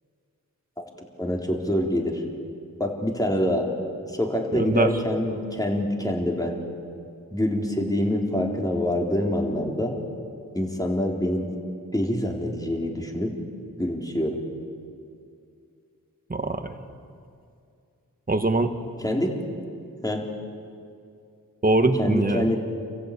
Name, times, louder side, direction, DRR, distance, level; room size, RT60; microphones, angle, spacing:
voice 1, 1.2-2.2 2.8-3.7 4.1-6.5 7.3-9.9 10.5-11.5 11.9-13.3 13.8-14.4 19.0-19.4 19.8-20.2 22.0-22.6, left 1 dB, 10° left, 0 dB, 4.0 m, -25 dB
voice 2, 4.5-4.9 16.3-16.7 18.3-18.7 21.6-22.5, right 2 dB, 25° right, 7 dB, 1.7 m, -22 dB
28.5 x 15.5 x 8.7 m, 2.4 s
wide cardioid pair, 75°, 33 cm